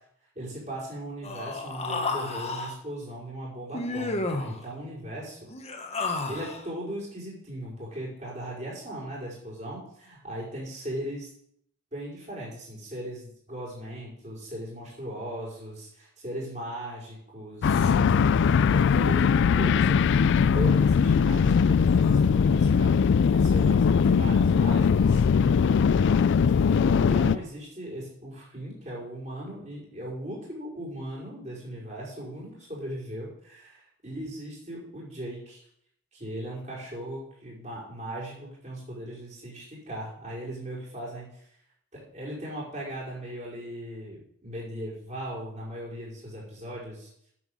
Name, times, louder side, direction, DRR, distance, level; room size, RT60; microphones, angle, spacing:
voice 1, 0.4-5.4 6.3-11.3 11.9-18.4 18.7-25.2 26.1-26.5 26.7-35.6 36.1-41.5 41.9-47.1, right 1 dB, 35° right, -6 dB, 5.2 m, -38 dB
Human voice, 1.2-2.7 3.7-4.6 5.5-6.6, left 3 dB, 30° left, 1.3 m, -31 dB
sound 1, 17.6-27.4, left 6 dB, 60° left, 0.3 m, -21 dB
9.1 x 7.2 x 6.8 m, 0.71 s
head